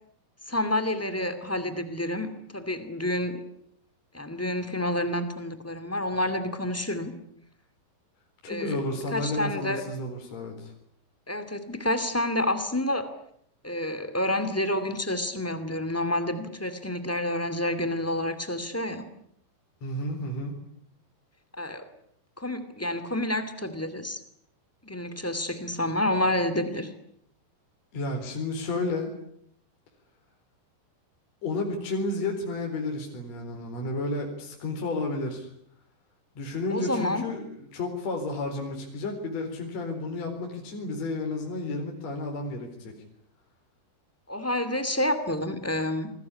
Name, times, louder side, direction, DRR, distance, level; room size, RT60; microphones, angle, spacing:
voice 1, 0.5-3.4 4.1-7.1 8.5-8.8 9.1-9.8 11.3-13.1 13.6-19.1 21.6-21.8 22.4-24.2 24.8-26.9 36.7-37.2 44.3-46.1, left 1 dB, 10° left, 10 dB, 0.9 m, -29 dB
voice 2, 8.4-10.7 19.8-20.5 27.9-29.1 31.4-35.5 36.3-42.9, left 2 dB, 40° left, 2 dB, 5.0 m, -32 dB
28.0 x 21.5 x 9.8 m, 0.71 s
omnidirectional pair, 5.2 m